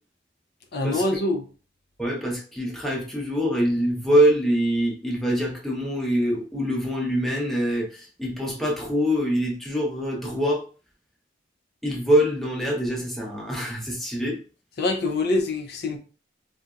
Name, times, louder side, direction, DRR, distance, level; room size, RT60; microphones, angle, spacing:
voice 1, 0.7-1.5 14.8-16.0, left 2 dB, 60° left, 0.4 m, -24 dB
voice 2, 2.0-10.6 11.8-14.4, equal, ahead, 0.7 m, -24 dB
3.9 x 2.1 x 2.3 m
head